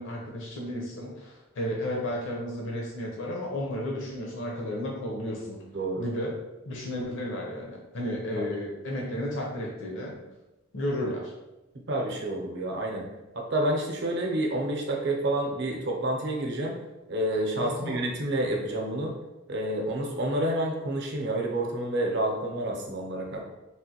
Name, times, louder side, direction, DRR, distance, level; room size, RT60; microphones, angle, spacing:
voice 1, 0.0-5.6 6.0-6.4 6.7-10.2 10.7-11.3 17.5-18.0, left 1 dB, 65° left, -2 dB, 0.7 m, -33 dB
voice 2, 5.7-6.0 8.4-8.5 11.9-13.1 13.3-16.8 17.1-19.1 19.5-23.4, right 1 dB, 60° right, 0 dB, 0.7 m, -29 dB
3.4 x 2.5 x 2.8 m, 1.0 s
head